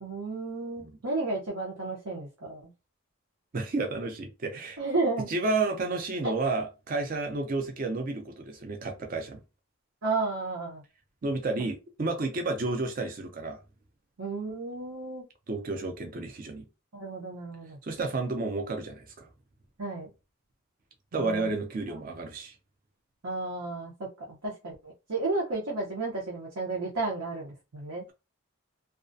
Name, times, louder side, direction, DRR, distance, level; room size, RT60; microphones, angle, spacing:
voice 1, 0.0-2.7 4.8-5.3 6.2-6.3 10.0-10.8 14.2-15.2 16.9-17.8 19.8-20.1 21.1-21.5 23.2-28.0, right 3 dB, 80° right, 0.7 m, -32 dB
voice 2, 3.5-4.8 5.3-9.4 11.2-13.6 15.5-16.7 17.8-19.3 21.1-22.5, right 3 dB, 40° right, 0.4 m, -31 dB
2.3 x 2.1 x 2.5 m
head